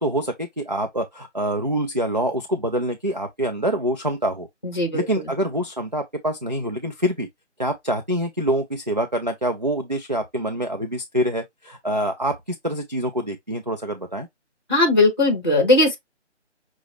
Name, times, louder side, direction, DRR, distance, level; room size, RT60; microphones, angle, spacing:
voice 1, 0.0-4.5 4.9-7.3 7.6-14.3, right 1 dB, 40° right, 0.4 m, -25 dB
voice 2, 4.6-5.3 14.7-16.0, left 2 dB, 20° left, 0.7 m, -19 dB
6.0 x 2.0 x 3.0 m
figure-of-eight pair, 170°, 36 cm